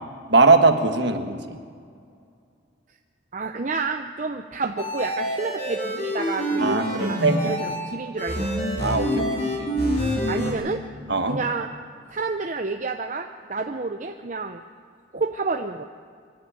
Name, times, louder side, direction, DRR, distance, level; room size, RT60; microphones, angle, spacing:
voice 1, 0.3-1.6 6.6-7.4 8.8-9.3 9.6-9.7 11.1-11.4, right 3 dB, 55° right, 6 dB, 1.6 m, -20 dB
voice 2, 3.3-7.2 7.4-8.5 10.3-10.8 11.2-11.7 12.1-14.6 15.1-15.9, right 3 dB, 40° right, 4 dB, 0.7 m, -29 dB
sound 1, 4.8-7.8 8.2-10.5, equal, 35° left, 4.9 m, -26 dB
25.5 x 11.5 x 8.9 m, 2.2 s
head